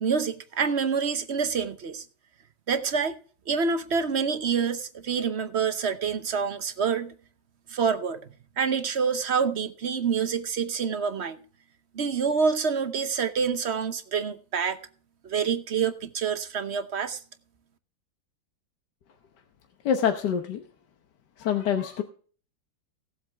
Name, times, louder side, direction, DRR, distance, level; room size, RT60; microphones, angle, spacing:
voice 1, 0.0-2.0 2.7-3.2 3.5-7.1 7.7-8.2 8.6-11.4 11.9-14.8 15.2-17.2, right 6 dB, 50° right, 0.9 m, -27 dB
voice 2, 19.8-20.6 21.4-22.0, left 8 dB, 65° left, 1.6 m, -25 dB
17.5 x 7.8 x 3.4 m
omnidirectional pair, 2.0 m